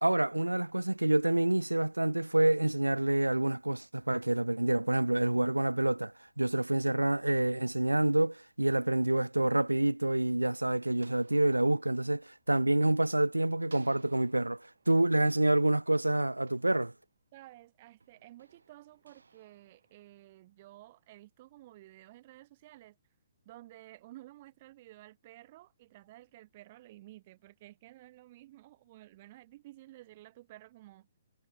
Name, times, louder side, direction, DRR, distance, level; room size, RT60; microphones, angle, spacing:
voice 1, 0.0-16.9, right 1 dB, 85° right, 0.3 m, -27 dB
sound 1, 9.8-13.2 13.6-17.4 18.0-20.7, right 4 dB, 70° right, 7.7 m, -63 dB
voice 2, 17.3-23.0 23.4-31.1, right 16 dB, 40° right, 4.9 m, -53 dB
figure-of-eight pair, 125°, 0 cm